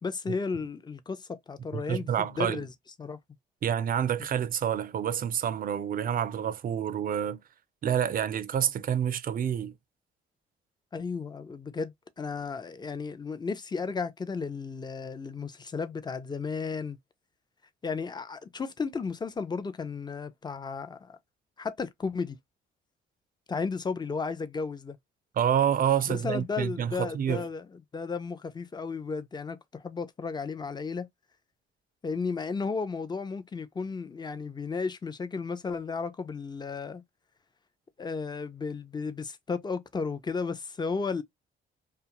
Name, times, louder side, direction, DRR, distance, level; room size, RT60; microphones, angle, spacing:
voice 1, 0.0-2.7 3.0-3.2 10.9-17.0 17.8-21.2 21.6-22.4 23.5-25.0 26.1-31.1 32.0-37.0 38.0-41.2, left 4 dB, 20° left, 0.5 m, -34 dB
voice 2, 1.7-2.6 3.6-7.4 7.8-9.7 25.4-27.4, right 9 dB, 45° right, 0.4 m, -28 dB
2.4 x 2.3 x 2.9 m
cardioid pair, 90°, 20 cm